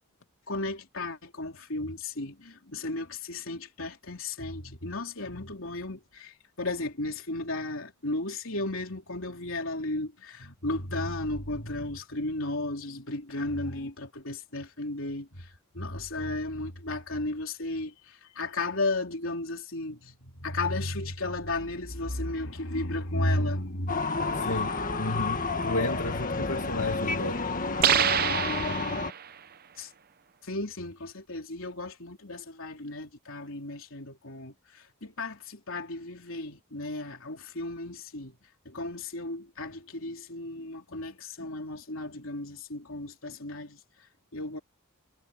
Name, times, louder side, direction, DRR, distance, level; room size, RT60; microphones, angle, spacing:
voice 1, 0.5-15.5 15.7-24.4 29.8-29.9 30.4-38.3 38.7-43.8 44.3-44.6, left 2 dB, 60° left, 3.9 m, -34 dB
sound 1, 23.9-29.1, left 3 dB, 40° left, 1.8 m, -30 dB
voice 2, 24.3-27.5, left 2 dB, 80° left, 2.3 m, -32 dB
sound 2, 27.8-29.4, right 9 dB, 45° right, 0.7 m, -26 dB
head